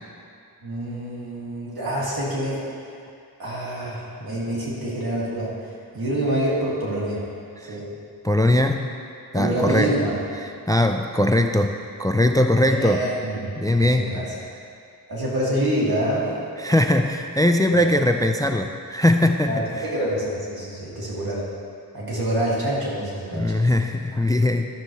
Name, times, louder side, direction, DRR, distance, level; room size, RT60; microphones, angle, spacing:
voice 1, 0.6-2.9 3.4-7.2 7.6-7.8 9.3-10.1 12.8-13.5 13.8-14.2 15.1-16.3 17.7-17.8 19.5-21.4 21.9-23.7, right 1 dB, 80° right, -7 dB, 2.2 m, -26 dB
voice 2, 8.2-8.9 9.3-9.9 10.4-11.7 12.0-13.0 13.6-14.2 16.6-19.8 23.3-24.7, left 1 dB, 10° left, 5 dB, 0.3 m, -20 dB
11.5 x 6.5 x 3.1 m, 2.4 s
wide cardioid pair, 85°, 36 cm